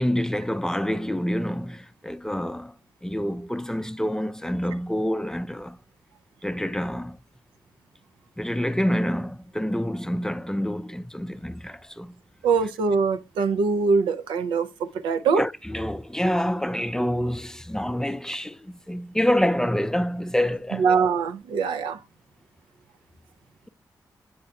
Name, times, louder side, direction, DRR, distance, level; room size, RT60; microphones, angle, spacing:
voice 1, 0.0-2.7 3.0-5.8 6.4-7.2 8.4-12.2 15.4-20.9, equal, 5° left, 0.4 m, -27 dB
voice 2, 12.4-15.4 20.7-22.0, right 5 dB, 90° right, 0.4 m, -23 dB
7.8 x 5.6 x 2.3 m
supercardioid pair, 40°, 8 cm